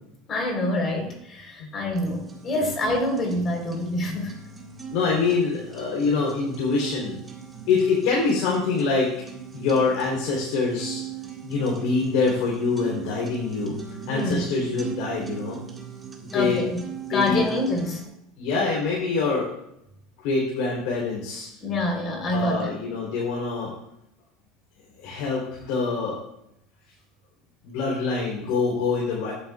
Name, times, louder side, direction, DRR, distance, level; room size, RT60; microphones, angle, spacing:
voice 1, 0.3-4.3 14.1-14.4 16.3-16.8 17.1-18.0 21.6-22.7, left 2 dB, 35° left, 2 dB, 3.8 m, -26 dB
sound 1, 2.0-18.0, right 7 dB, 20° right, 1.8 m, -40 dB
voice 2, 4.9-7.2 7.7-9.1 9.5-11.0 11.4-13.8 14.1-15.6 16.3-16.6 17.1-17.5 18.4-19.5 20.2-21.5 22.3-23.7 25.0-26.2 27.6-29.3, left 4 dB, 70° left, -3 dB, 3.4 m, -25 dB
15.5 x 9.1 x 2.4 m, 0.78 s
supercardioid pair, 130°, 0 cm